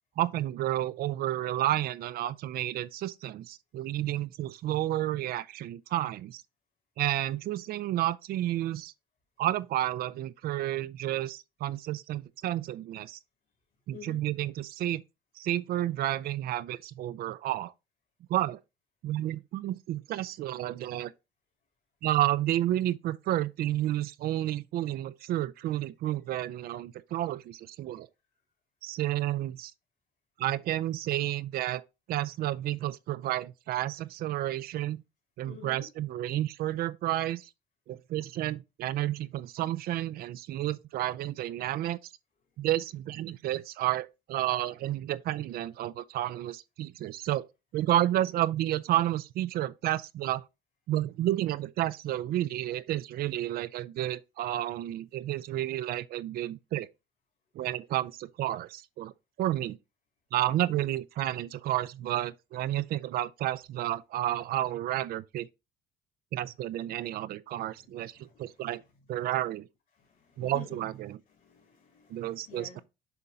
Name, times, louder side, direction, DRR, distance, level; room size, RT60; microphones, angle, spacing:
voice 1, 0.2-6.4 7.0-8.9 9.4-13.2 13.9-15.0 15.4-17.7 18.3-18.6 19.0-21.1 22.0-28.1 28.8-29.7 30.4-31.8 32.1-35.0 35.4-37.5 37.9-42.0 42.6-47.5 47.7-50.4 50.9-56.9 57.6-59.1 59.4-59.8 60.3-65.5 66.3-68.8 69.1-69.7 70.4-71.2 72.1-72.8, right 13 dB, 65° right, 0.4 m, -31 dB
voice 2, 35.4-35.9 60.7-60.8 67.7-68.6 70.0-70.8 71.3-72.8, left 5 dB, 55° left, 2.8 m, -49 dB
7.0 x 3.6 x 3.9 m
cardioid pair, 110°, 17 cm